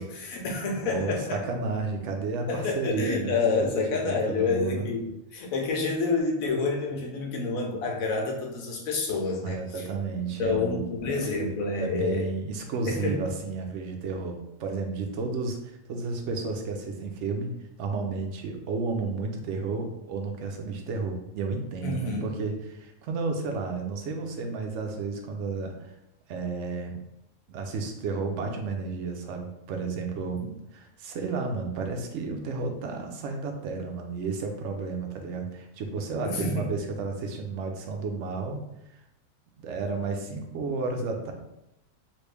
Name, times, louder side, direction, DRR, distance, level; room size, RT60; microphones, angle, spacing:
voice 1, 0.0-1.4 2.5-9.9 10.4-12.3 12.9-13.2 21.8-22.3 30.4-30.5 36.2-36.7, left 4 dB, 80° left, 1 dB, 1.1 m, -28 dB
voice 2, 0.8-4.9 9.4-10.9 11.8-17.5 17.8-25.9 26.3-27.0 27.5-30.5 30.7-38.6 39.6-41.3, right 4 dB, 65° right, 3 dB, 0.8 m, -32 dB
3.1 x 2.4 x 3.3 m, 0.87 s
omnidirectional pair, 1.4 m